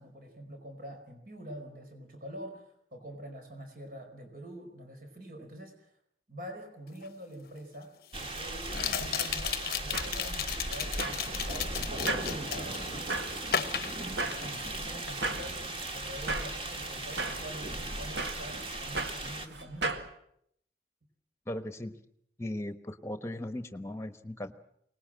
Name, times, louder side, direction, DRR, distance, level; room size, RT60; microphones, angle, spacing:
voice 1, 0.0-5.9 6.3-7.9 8.2-20.0, right 1 dB, 50° right, 4 dB, 4.9 m, -46 dB
sound 1, 7.0-7.1 8.7-12.9 13.5-14.8 15.1-15.4, left 9 dB, 55° left, 0.8 m, -34 dB
sound 2, 8.1-19.5, right 2 dB, 30° right, 2.0 m, -37 dB
sound 3, 9.6-20.1, right 3 dB, 85° right, 1.9 m, -38 dB
voice 2, 21.5-21.9 22.4-24.5, left 1 dB, 15° left, 9 dB, 1.2 m, -37 dB
23.5 x 20.0 x 7.7 m, 0.71 s
head